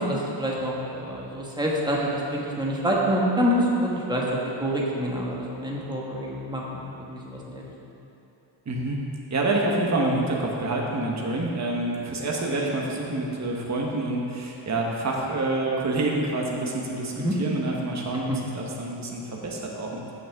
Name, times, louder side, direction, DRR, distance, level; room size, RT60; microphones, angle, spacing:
voice 1, 0.0-7.7 17.2-17.3, equal, 10° right, -4 dB, 1.3 m, -27 dB
voice 2, 8.7-9.0 9.3-18.3 18.5-20.1, right 2 dB, 35° right, -2 dB, 1.1 m, -27 dB
15.0 x 6.4 x 3.5 m, 2.9 s
wide cardioid pair, 160°, 47 cm